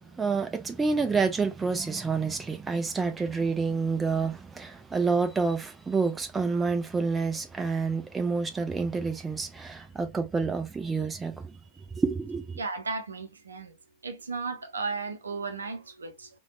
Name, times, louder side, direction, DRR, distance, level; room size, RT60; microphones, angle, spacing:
voice 1, 0.0-11.6 11.9-12.6, right 4 dB, 15° right, 0.5 m, -28 dB
voice 2, 12.6-13.7 14.0-16.3, right 4 dB, 75° right, 0.6 m, -35 dB
3.4 x 2.3 x 2.3 m
figure-of-eight pair, 90°, 0 cm